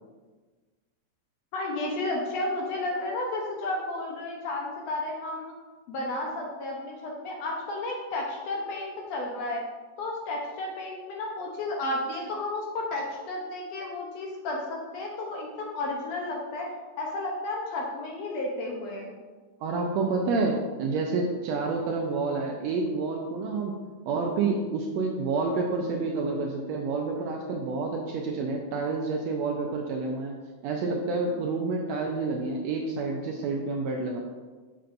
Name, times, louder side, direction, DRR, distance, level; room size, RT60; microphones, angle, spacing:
voice 1, 1.5-5.5 5.9-9.6 10.0-16.7 17.0-19.2, left 2 dB, 70° left, -1 dB, 1.8 m, -32 dB
voice 2, 19.6-23.8 24.1-30.3 30.6-34.2, right 3 dB, 80° right, 0 dB, 1.6 m, -29 dB
6.7 x 6.7 x 2.5 m, 1.4 s
omnidirectional pair, 3.5 m